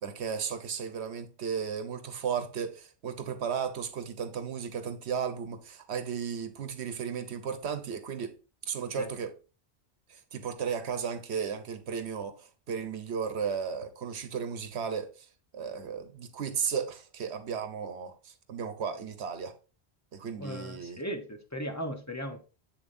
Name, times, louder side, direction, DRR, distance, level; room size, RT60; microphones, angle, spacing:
voice 1, 0.0-8.3 8.7-9.3 10.1-15.3 15.5-19.6 20.1-21.0, right 7 dB, 80° right, 1.2 m, -35 dB
voice 2, 20.4-22.4, equal, 15° left, 0.9 m, -37 dB
7.9 x 7.0 x 2.6 m
omnidirectional pair, 1.1 m